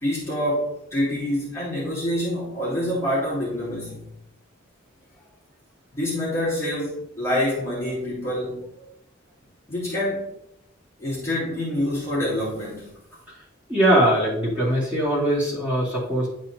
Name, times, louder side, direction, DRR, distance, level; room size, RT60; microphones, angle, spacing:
voice 1, 0.0-4.0 5.9-8.6 9.7-10.3 11.0-12.9, left 1 dB, 15° left, -9 dB, 2.4 m, -26 dB
voice 2, 13.7-16.3, right 1 dB, 10° right, -10 dB, 2.4 m, -21 dB
10.0 x 4.3 x 2.6 m, 0.79 s
head